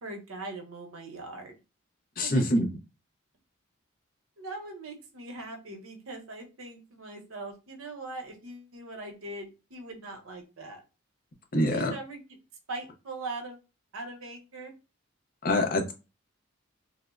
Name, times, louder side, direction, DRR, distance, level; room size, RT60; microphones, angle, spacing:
voice 1, 0.0-1.6 2.2-2.4 4.4-10.8 11.7-12.2 12.7-13.6 13.9-14.7, right 2 dB, 85° right, 3 dB, 0.8 m, -41 dB
voice 2, 2.2-2.7 11.5-11.9 15.4-15.9, left 1 dB, 45° left, 3 dB, 0.6 m, -25 dB
3.3 x 2.1 x 2.3 m, 0.29 s
head